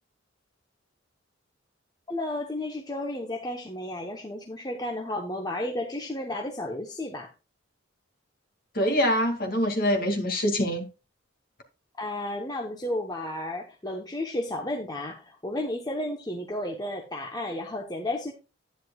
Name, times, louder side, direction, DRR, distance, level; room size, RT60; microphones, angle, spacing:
voice 1, 2.1-7.3 12.0-18.3, left 1 dB, 20° left, 1.0 m, -32 dB
voice 2, 8.7-10.9, equal, 45° left, 2.4 m, -24 dB
11.0 x 10.0 x 2.4 m
head